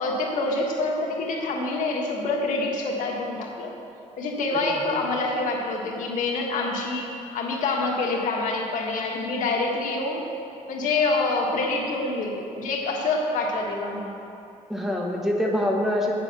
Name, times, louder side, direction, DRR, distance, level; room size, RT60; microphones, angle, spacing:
voice 1, 0.0-3.7 4.2-10.2 10.7-14.1, left 3 dB, 80° left, 0 dB, 1.5 m, -26 dB
voice 2, 4.5-5.0 14.7-16.1, left 1 dB, 5° right, -1 dB, 1.1 m, -25 dB
8.7 x 7.5 x 6.7 m, 2.7 s
cardioid pair, 155°, 13 cm